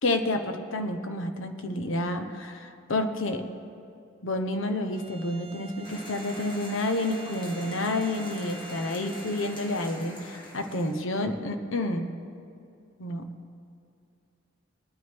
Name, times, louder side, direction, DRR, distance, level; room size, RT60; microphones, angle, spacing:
voice 1, 0.0-3.4 4.2-12.1 13.0-13.2, left 1 dB, 75° left, 6 dB, 0.9 m, -29 dB
Bowed string instrument, 4.8-10.1, right 3 dB, 30° right, 0.6 m, -46 dB
sound 1, 5.8-10.9, left 1 dB, 25° left, 1.4 m, -43 dB
21.5 x 9.5 x 3.6 m, 2.5 s
head